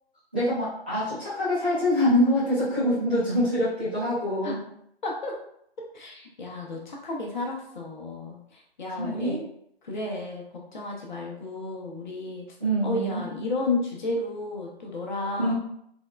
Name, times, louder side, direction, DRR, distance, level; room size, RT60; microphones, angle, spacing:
voice 1, 0.3-4.6 9.0-9.4 12.6-13.2 15.4-15.5, equal, 10° right, -15 dB, 0.4 m, -25 dB
voice 2, 5.0-5.4 5.9-9.4 9.8-10.4 10.7-12.4 12.8-15.5, left 2 dB, 45° left, -1 dB, 0.8 m, -32 dB
3.6 x 2.1 x 2.2 m, 0.71 s
figure-of-eight pair, 135°, 31 cm